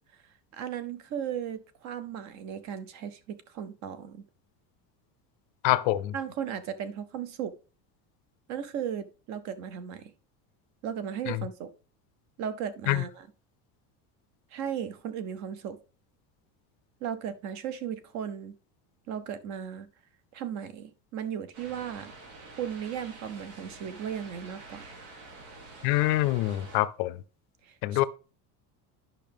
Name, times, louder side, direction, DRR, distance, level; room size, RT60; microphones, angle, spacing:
voice 1, 0.5-4.2 6.1-7.6 8.5-10.1 10.8-11.7 12.4-13.3 14.5-15.8 17.0-18.5 19.1-19.9 20.3-22.1 22.6-24.9 27.6-28.0, right 8 dB, 40° right, 0.7 m, -36 dB
voice 2, 5.6-6.1 11.3-11.4 12.9-13.0 25.8-27.2 27.8-28.0, left 16 dB, 55° left, 0.5 m, -25 dB
sound 1, 21.5-26.8, right 3 dB, 85° right, 2.7 m, -47 dB
10.5 x 5.6 x 3.4 m
cardioid pair, 170°, 42 cm